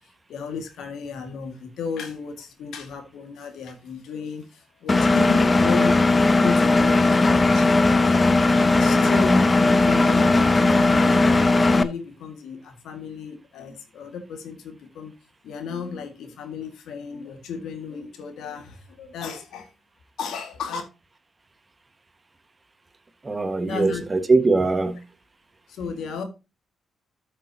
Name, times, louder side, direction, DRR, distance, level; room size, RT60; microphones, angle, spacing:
voice 1, 0.3-6.1 6.3-8.3 8.6-15.1 15.4-19.7 20.2-20.8 23.6-24.0 25.7-26.2, left 5 dB, 75° left, 1.9 m, -34 dB
Engine, 4.9-11.8, left 2 dB, 35° left, 0.9 m, -18 dB
voice 2, 23.2-25.0, right 3 dB, 30° right, 1.6 m, -21 dB
12.5 x 6.5 x 2.9 m
hypercardioid pair, 45°, 0 cm